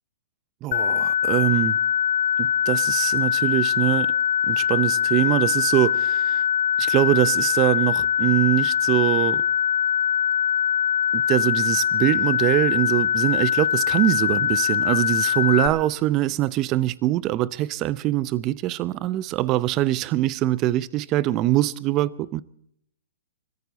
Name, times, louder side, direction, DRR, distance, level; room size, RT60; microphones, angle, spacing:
voice 1, 0.6-1.8 2.4-4.1 4.5-6.4 6.8-9.4 11.1-22.4, right 15 dB, 35° right, 0.7 m, -23 dB
sound 1, 0.7-15.7, left 9 dB, 50° left, 1.4 m, -22 dB
24.5 x 14.5 x 4.0 m
hypercardioid pair, 130°, 0 cm